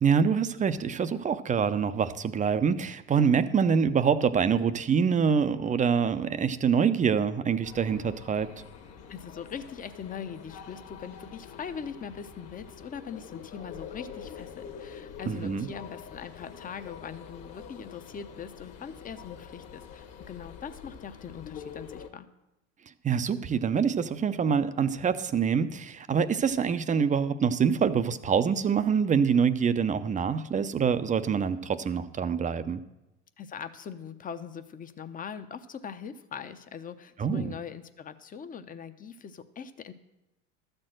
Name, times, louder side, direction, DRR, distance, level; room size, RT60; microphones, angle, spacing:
voice 1, 0.0-8.5 15.3-15.7 23.0-32.8 37.2-37.5, right 6 dB, 20° right, 11 dB, 0.5 m, -25 dB
sound 1, 7.6-22.1, left 7 dB, 40° left, 1.3 m, -46 dB
voice 2, 9.1-22.3 33.4-39.9, left 7 dB, 20° left, 11 dB, 0.7 m, -41 dB
12.5 x 4.4 x 7.7 m, 0.94 s
hypercardioid pair, 90°, 39 cm